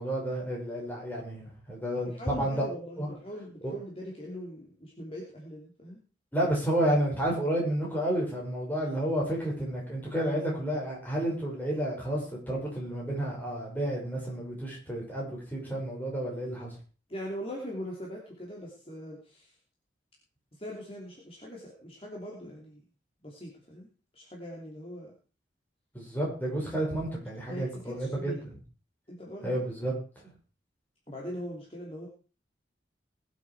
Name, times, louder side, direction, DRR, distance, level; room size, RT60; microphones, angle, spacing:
voice 1, 0.0-3.1 3.6-3.7 6.3-16.7 25.9-28.4 29.4-29.9, right 1 dB, 10° left, -3 dB, 6.1 m, -31 dB
voice 2, 2.0-6.0 17.1-19.5 20.6-22.8 23.2-23.9 24.1-25.1 27.5-28.4 29.1-29.6 31.1-32.1, equal, 30° left, -2 dB, 3.0 m, -41 dB
21.0 x 8.5 x 4.8 m, 0.37 s
head